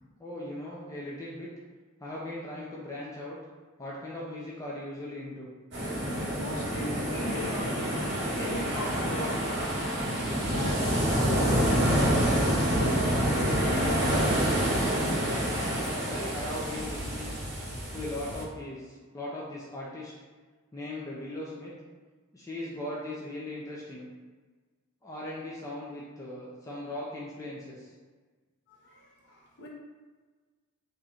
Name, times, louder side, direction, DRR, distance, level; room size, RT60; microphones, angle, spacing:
voice 1, 0.2-1.5 2.0-3.4 3.8-5.5 16.1-17.4 17.9-20.1 20.7-21.7 22.3-24.1 25.0-27.9, left 1 dB, 15° left, -6 dB, 0.5 m, -38 dB
sound 1, 5.7-18.4, equal, 55° right, 1.0 m, -27 dB
voice 2, 6.4-8.1 8.4-9.7 10.5-15.4 15.8-15.9 28.7-29.7, left 1 dB, 55° left, -4 dB, 0.8 m, -39 dB
3.0 x 2.7 x 3.8 m, 1.4 s
head